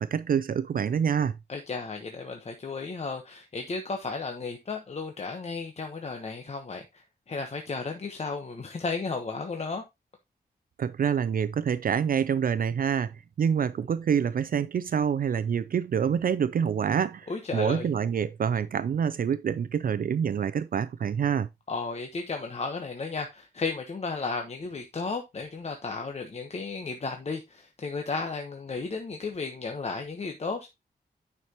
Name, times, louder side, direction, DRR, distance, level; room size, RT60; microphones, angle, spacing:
voice 1, 0.0-1.4 10.8-21.5, right 7 dB, 60° right, 0.4 m, -26 dB
voice 2, 1.5-9.8 17.3-17.9 21.7-30.7, left 4 dB, 40° left, 1.1 m, -34 dB
9.6 x 5.9 x 2.9 m
wide cardioid pair, 165°, 17 cm